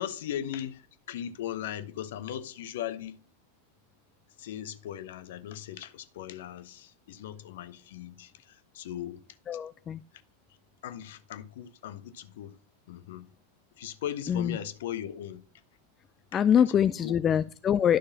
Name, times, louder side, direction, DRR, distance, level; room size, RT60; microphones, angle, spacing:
voice 1, 0.0-3.2 4.4-9.2 10.8-12.6 12.9-13.3 13.8-15.4 16.3-16.4 16.7-17.3, left 10 dB, 55° left, 0.8 m, -38 dB
voice 2, 9.5-10.0 14.3-14.6 16.3-18.0, left 9 dB, 25° left, 0.3 m, -24 dB
11.5 x 6.4 x 2.8 m
figure-of-eight pair, 90°, 0 cm